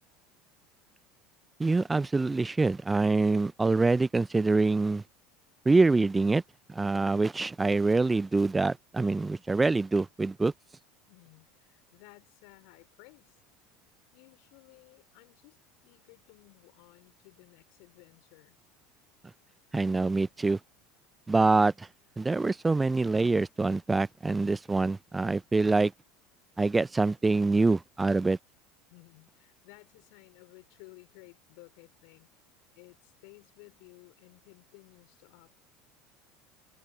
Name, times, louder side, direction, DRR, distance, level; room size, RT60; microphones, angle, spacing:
voice 1, 1.6-5.0 5.7-6.4 6.7-10.5 19.7-20.6 21.3-21.9 22.2-25.9 26.6-28.4, right 3 dB, 15° right, 0.5 m, -25 dB
voice 2, 11.1-13.4 14.1-18.6 28.9-32.3 32.8-35.6, left 34 dB, 65° left, 3.8 m, -56 dB
hypercardioid pair, 75°, 0 cm